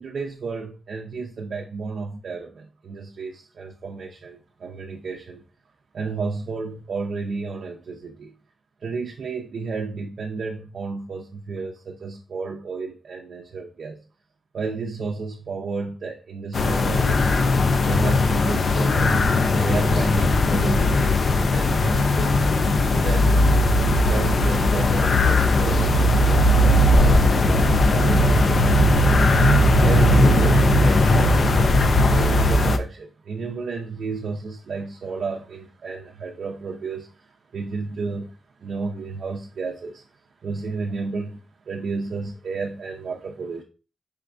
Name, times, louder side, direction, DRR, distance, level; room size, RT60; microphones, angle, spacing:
voice 1, 0.0-5.4 5.9-8.3 8.8-14.0 14.5-17.4 17.8-19.2 19.6-21.2 21.5-22.4 22.9-29.2 29.8-31.6 32.0-37.1 37.5-38.4 38.6-40.0 40.4-41.4 41.7-43.6, right 4 dB, 70° right, 0.5 m, -32 dB
sound 1, 16.5-32.8, left 1 dB, 55° left, 0.4 m, -18 dB
4.9 x 3.3 x 2.4 m
wide cardioid pair, 105°, 0 cm